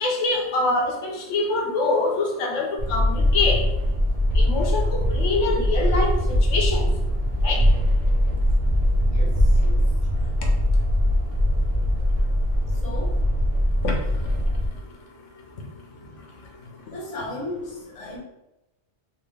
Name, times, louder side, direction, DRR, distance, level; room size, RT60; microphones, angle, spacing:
voice 1, 0.0-3.6 4.4-6.1 6.5-6.9 7.4-7.6 13.8-13.9, left 3 dB, 90° left, 1 dB, 1.1 m, -24 dB
sound 1, 2.8-14.7, equal, 45° right, 0.5 m, -21 dB
voice 2, 9.1-9.9 12.7-13.2 16.0-16.2 16.9-18.2, left 1 dB, 30° left, -3 dB, 1.0 m, -36 dB
3.4 x 2.8 x 3.1 m, 0.90 s
omnidirectional pair, 1.2 m